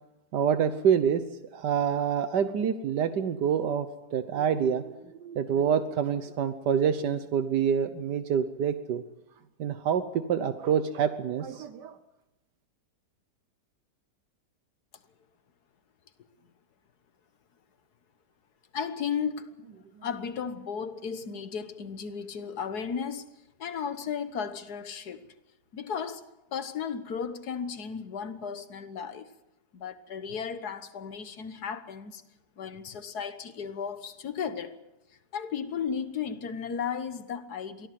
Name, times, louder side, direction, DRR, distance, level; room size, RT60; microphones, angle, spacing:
voice 1, 0.3-1.2 1.5-9.0 9.6-12.0, right 8 dB, 80° right, 1.6 m, -27 dB
voice 2, 18.7-19.6 20.0-23.3 23.6-25.2 25.7-26.3 26.5-29.3 29.7-32.2 32.6-34.8 35.3-37.9, left 7 dB, 70° left, 1.8 m, -34 dB
24.0 x 16.5 x 7.7 m
omnidirectional pair, 1.8 m